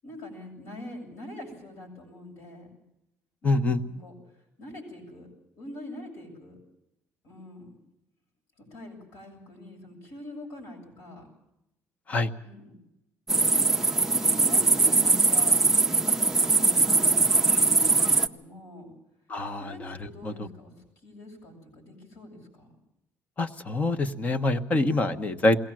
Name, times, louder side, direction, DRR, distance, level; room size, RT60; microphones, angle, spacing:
voice 1, 0.0-2.8 3.4-5.3 5.5-6.6 7.2-7.7 8.6-11.3 12.4-12.8 13.8-15.6 16.3-18.9 19.5-20.7 21.0-22.7, left 1 dB, 80° left, 0 dB, 7.9 m, -44 dB
voice 2, 3.4-3.8 12.1-12.3 19.3-19.9 20.2-20.3 23.4-25.6, left 2 dB, 30° left, 9 dB, 1.1 m, -25 dB
sound 1, 13.3-18.3, right 3 dB, 10° right, 0.7 m, -21 dB
22.0 x 17.5 x 7.6 m, 0.86 s
cardioid pair, 150°, 5 cm